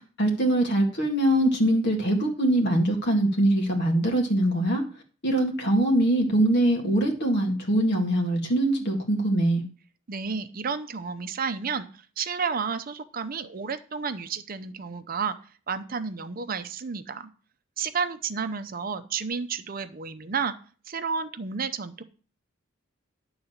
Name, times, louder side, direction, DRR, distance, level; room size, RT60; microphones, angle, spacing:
voice 1, 0.2-4.8 5.2-9.6, right 1 dB, 55° left, 2 dB, 2.0 m, -23 dB
voice 2, 10.1-11.9 12.2-15.4 15.7-17.3 17.8-20.5 20.9-22.0, right 5 dB, 45° right, 10 dB, 0.6 m, -31 dB
10.5 x 3.9 x 7.2 m, 0.40 s
head